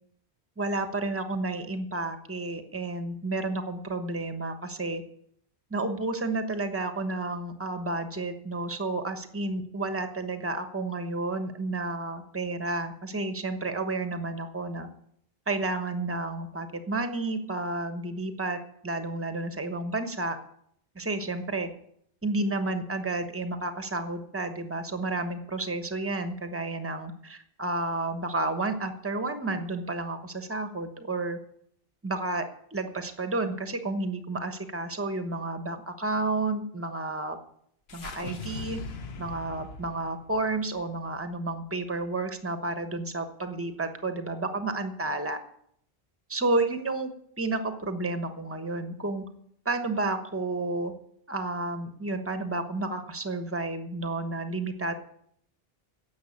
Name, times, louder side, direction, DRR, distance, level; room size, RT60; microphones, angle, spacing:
voice 1, 0.6-5.0 5.7-14.9 15.5-20.4 20.9-21.7 22.2-31.4 32.0-32.4 32.7-37.4 37.9-38.8 39.2-45.4 46.3-47.1 47.4-49.2 49.6-50.9 51.3-54.9, right 2 dB, 15° right, 8 dB, 1.1 m, -31 dB
sound 1, 37.9-42.2, left 4 dB, 80° left, 1.2 m, -41 dB
10.5 x 7.5 x 8.6 m, 0.69 s
omnidirectional pair, 1.0 m